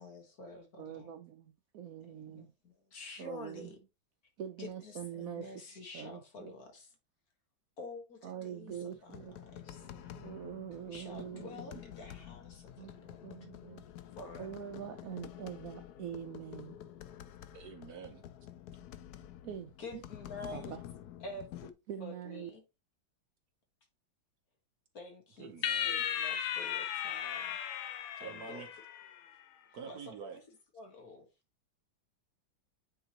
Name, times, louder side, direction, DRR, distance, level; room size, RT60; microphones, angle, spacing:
voice 1, 0.0-1.1 2.1-3.8 4.6-6.9 7.8-9.2 9.4-9.9 10.7-13.4 14.2-14.5 19.8-20.7 21.2-21.7 22.0-22.6 24.9-25.5 25.8-27.5 28.2-28.6 29.8-30.4 30.7-31.3, left 2 dB, 50° left, 1.8 m, -48 dB
voice 2, 0.8-2.5 2.9-3.7 4.4-6.5 8.2-11.6 12.8-13.8 14.4-16.8 19.4-20.0 20.5-20.8 21.9-22.5, right 9 dB, 90° right, 0.7 m, -44 dB
sound 1, 8.7-21.7, left 11 dB, 75° left, 0.9 m, -49 dB
voice 3, 17.5-18.3 25.4-26.0 28.2-28.7 29.7-30.4, right 6 dB, 60° right, 1.2 m, -47 dB
sound 2, 25.6-29.2, left 9 dB, 90° left, 1.5 m, -36 dB
9.0 x 3.8 x 2.9 m
omnidirectional pair, 2.2 m